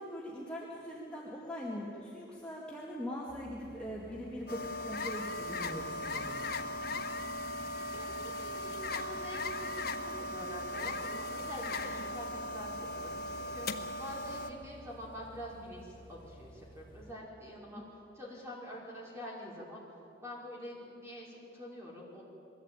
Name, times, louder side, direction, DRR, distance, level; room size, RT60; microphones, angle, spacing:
voice 1, 0.0-6.5, equal, 5° left, -6 dB, 2.2 m, -41 dB
sound 1, 3.3-17.1, equal, 30° left, 2.0 m, -55 dB
sound 2, 4.5-14.5, left 2 dB, 60° left, 1.2 m, -38 dB
voice 2, 7.9-17.8 18.1-19.8 20.2-22.3, equal, 15° right, -4 dB, 5.1 m, -46 dB
22.0 x 15.0 x 9.0 m, 2.9 s
head